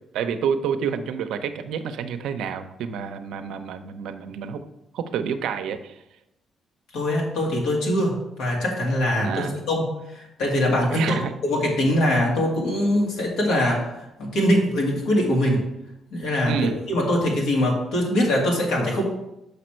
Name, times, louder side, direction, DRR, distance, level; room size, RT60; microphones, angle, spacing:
voice 1, 0.1-4.6 4.9-6.0 9.2-9.6 10.9-11.3 16.5-16.8, right 7 dB, 85° right, 8 dB, 0.6 m, -28 dB
voice 2, 6.9-9.9 10.1-11.2 11.4-15.6 16.1-19.0, left 1 dB, 85° left, -2 dB, 2.0 m, -22 dB
6.7 x 5.1 x 4.4 m, 0.87 s
cardioid pair, 90°, 0 cm